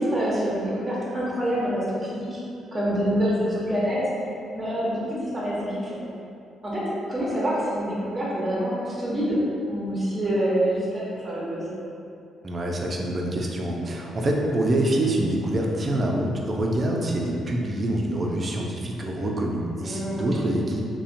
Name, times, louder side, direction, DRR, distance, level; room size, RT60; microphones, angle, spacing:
voice 1, 0.0-2.4 2.7-4.0 4.5-6.0 6.6-6.8 7.1-9.4 9.7-11.7 19.8-20.3, equal, 20° right, -7 dB, 0.8 m, -26 dB
voice 2, 12.4-20.8, right 1 dB, 35° right, -1 dB, 0.4 m, -26 dB
2.7 x 2.1 x 2.5 m, 2.6 s
cardioid pair, 90°, 0 cm